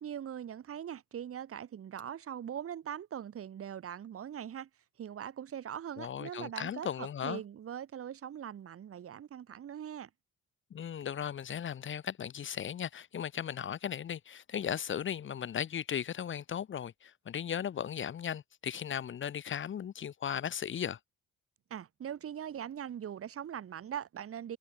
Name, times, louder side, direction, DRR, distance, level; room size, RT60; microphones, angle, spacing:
voice 1, 0.0-4.7 5.0-10.1 21.7-24.6, right 9 dB, 50° right, 1.2 m, -41 dB
voice 2, 6.0-7.4 10.7-21.0, left 9 dB, 40° left, 0.7 m, -37 dB
cardioid pair, 90°, 30 cm